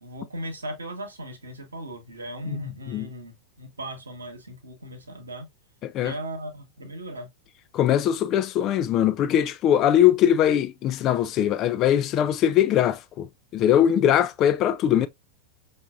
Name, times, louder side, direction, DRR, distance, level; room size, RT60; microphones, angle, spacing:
voice 1, 0.0-5.5 6.0-7.3, right 1 dB, 75° right, 1.2 m, -37 dB
voice 2, 5.8-6.1 7.7-13.3 13.5-15.1, left 10 dB, 35° left, 0.4 m, -21 dB
5.6 x 2.6 x 2.4 m
figure-of-eight pair, 90°, 0 cm